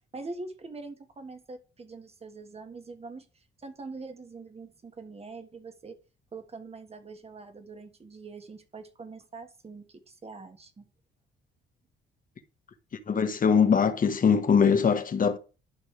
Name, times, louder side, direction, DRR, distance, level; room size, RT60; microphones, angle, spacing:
voice 1, 0.1-6.0 6.3-10.9, right 3 dB, 30° right, 1.8 m, -43 dB
voice 2, 13.1-15.4, left 6 dB, 45° left, 1.4 m, -22 dB
11.5 x 5.5 x 3.4 m
cardioid pair, 90°, 20 cm